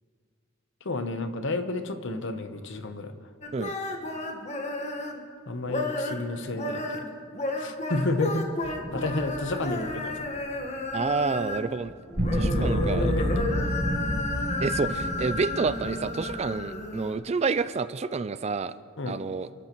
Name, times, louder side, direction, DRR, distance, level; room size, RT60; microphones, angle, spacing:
voice 1, 0.8-3.1 5.5-7.1 7.6-10.3 12.4-13.5 19.0-19.2, left 2 dB, 60° left, 9 dB, 0.9 m, -31 dB
sound 1, 3.4-5.2 5.6-6.2 6.5-11.7 12.1-17.1, left 2 dB, 35° left, 1.4 m, -32 dB
sound 2, 8.6-10.6 12.2-16.6, equal, 50° right, 2.7 m, -30 dB
voice 2, 10.9-12.0 12.3-13.1 14.6-18.7 19.1-19.5, right 4 dB, 30° right, 14 dB, 0.4 m, -29 dB
29.0 x 13.0 x 3.1 m, 2.2 s
head